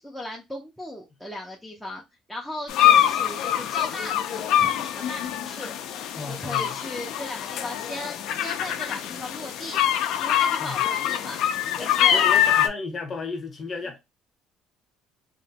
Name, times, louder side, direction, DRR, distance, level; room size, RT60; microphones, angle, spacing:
voice 1, 0.0-2.0 2.3-5.7 6.3-9.8 10.2-11.4 11.7-12.3, left 1 dB, ahead, 0.4 m, -37 dB
sound 1, 2.7-12.7, left 11 dB, 60° left, 0.4 m, -24 dB
voice 2, 6.1-6.8 10.6-10.8 11.8-14.0, left 4 dB, 25° left, 0.8 m, -34 dB
2.8 x 2.1 x 2.7 m
cardioid pair, 175°, 0 cm